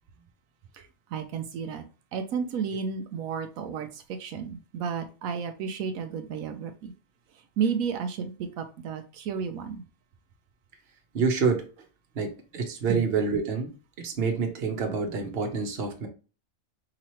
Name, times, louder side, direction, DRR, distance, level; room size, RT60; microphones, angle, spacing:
voice 1, 1.1-1.8 2.1-3.9 4.2-6.9 7.6-9.8 12.9-13.0, right 6 dB, 80° right, 1.0 m, -32 dB
voice 2, 11.1-11.7 12.2-13.7 14.0-16.1, right 5 dB, 50° right, 1.1 m, -27 dB
4.9 x 2.9 x 3.0 m
omnidirectional pair, 1.4 m